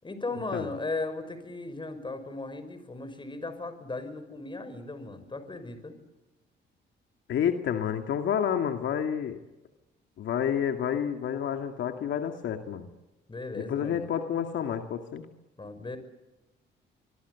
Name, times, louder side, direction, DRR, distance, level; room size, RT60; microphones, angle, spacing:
voice 1, 0.0-5.9 13.3-14.1 15.6-16.0, left 3 dB, 25° left, 10 dB, 5.8 m, -37 dB
voice 2, 7.3-9.4 10.2-12.9 13.6-15.3, left 8 dB, 70° left, 6 dB, 2.2 m, -29 dB
25.0 x 23.5 x 8.3 m, 1.0 s
cardioid pair, 90°, 20 cm